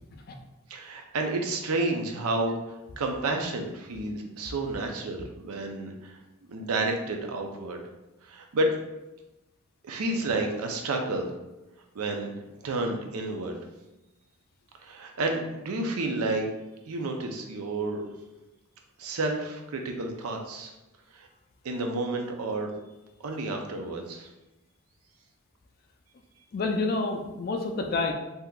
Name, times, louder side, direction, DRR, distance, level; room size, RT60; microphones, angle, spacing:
voice 1, 0.7-6.2 6.5-7.8 8.3-8.7 9.8-11.3 11.9-12.3 12.6-13.6 14.8-16.5 16.9-18.0 19.0-20.7 21.1-21.3 21.6-22.7 23.2-24.3, right 2 dB, 80° right, 3 dB, 0.5 m, -30 dB
voice 2, 26.5-28.1, left 3 dB, 45° left, 4 dB, 0.3 m, -29 dB
3.6 x 2.8 x 2.3 m, 0.98 s
head